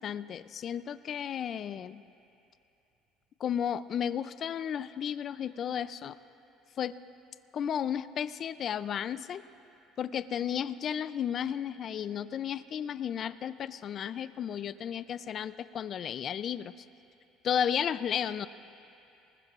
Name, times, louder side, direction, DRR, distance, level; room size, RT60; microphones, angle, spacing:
voice 1, 0.0-2.0 3.4-6.1 6.8-6.9 7.5-9.4 10.0-16.7 17.4-18.5, left 9 dB, 40° left, 14 dB, 0.4 m, -33 dB
24.0 x 20.0 x 2.5 m, 2.8 s
cardioid pair, 135°, 0 cm